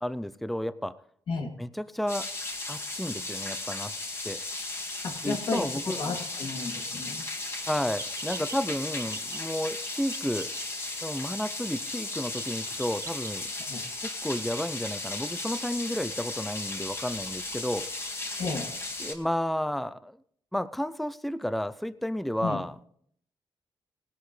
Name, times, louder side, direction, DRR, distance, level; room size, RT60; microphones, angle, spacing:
voice 1, 0.0-1.0 1.6-2.3 2.7-3.9 4.2-4.4 5.2-6.0 7.7-10.5 11.0-13.5 14.0-17.9 19.0-20.2 20.5-22.7, equal, ahead, 15 dB, 0.5 m, -32 dB
sound 1, 2.1-19.1, left 2 dB, 30° left, 2.1 m, -36 dB
voice 2, 5.0-7.3 13.7-13.8 18.4-18.7 22.4-22.6, left 4 dB, 70° left, 0 dB, 2.9 m, -33 dB
sound 2, 7.9-13.5, right 4 dB, 35° right, 0.9 m, -47 dB
19.0 x 11.5 x 3.3 m, 0.64 s
wide cardioid pair, 145°, 9 cm